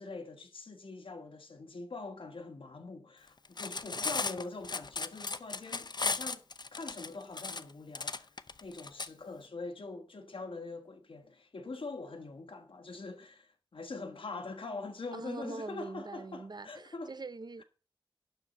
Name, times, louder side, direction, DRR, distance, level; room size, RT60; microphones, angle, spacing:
voice 1, 0.0-6.4 6.7-8.3 8.6-17.2, left 3 dB, 85° left, 1.5 m, -43 dB
Cutlery silverware, 3.4-9.1, left 4 dB, 55° left, 0.6 m, -36 dB
voice 2, 15.1-17.6, right 3 dB, 55° right, 0.6 m, -43 dB
12.0 x 4.5 x 8.2 m
wide cardioid pair, 70°, 9 cm